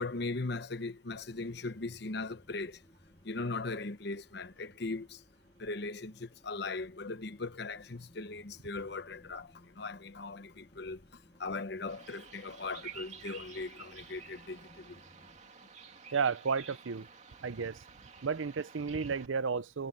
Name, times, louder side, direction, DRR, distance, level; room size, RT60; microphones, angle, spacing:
voice 1, 0.0-2.8 3.2-5.2 5.6-11.0 11.4-15.0, left 3 dB, 55° left, 0.9 m, -39 dB
sound 1, 1.1-15.4, equal, 25° left, 3.3 m, -63 dB
Bird vocalization bird call bird song, 11.9-19.3, right 6 dB, 35° right, 2.6 m, -51 dB
voice 2, 16.1-17.1 17.4-17.8 18.2-19.9, right 5 dB, 85° right, 0.6 m, -32 dB
head